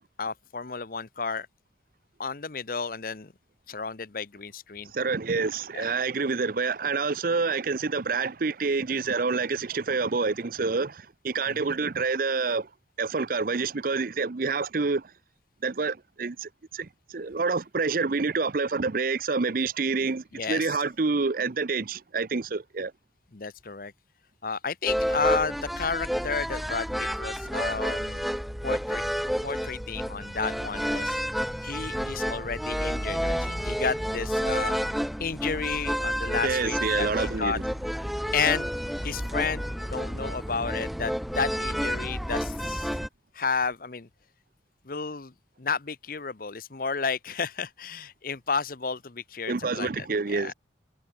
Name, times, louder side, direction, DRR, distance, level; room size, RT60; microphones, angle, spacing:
voice 1, 0.2-1.5 2.2-3.3 3.7-4.9 5.7-5.9 11.5-11.8 20.3-20.8 23.3-23.9 24.4-28.3 28.6-29.0 29.4-31.2 31.6-34.8 35.2-37.6 38.3-38.7 39.0-42.9 43.3-44.1 44.8-45.3 45.6-50.5, left 5 dB, 50° left, 0.9 m, -32 dB
voice 2, 4.9-12.7 13.0-15.1 15.6-22.9 36.4-37.6 49.5-50.5, right 4 dB, 50° right, 0.6 m, -28 dB
sound 1, 24.9-43.1, equal, ahead, 0.7 m, -30 dB
head